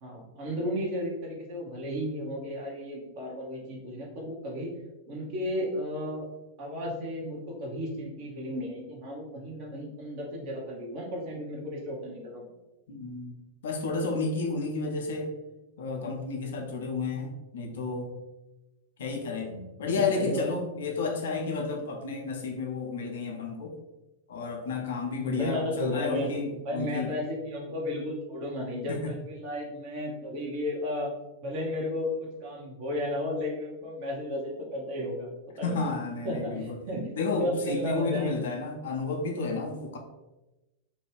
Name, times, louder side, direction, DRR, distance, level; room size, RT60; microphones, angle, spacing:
voice 1, 0.0-4.7 5.1-6.3 6.6-12.5 19.9-20.5 25.2-31.1 31.4-32.1 32.4-35.3 35.6-35.8 36.2-38.4 39.0-39.1, left 1 dB, 45° right, -2 dB, 0.8 m, -34 dB
voice 2, 12.9-13.3 13.6-15.3 15.8-18.1 19.0-23.8 24.3-27.1 28.9-29.1 35.6-36.8 37.1-40.0, left 4 dB, 60° left, 2 dB, 0.5 m, -31 dB
2.5 x 2.2 x 3.3 m, 1.0 s
figure-of-eight pair, 90°, 0 cm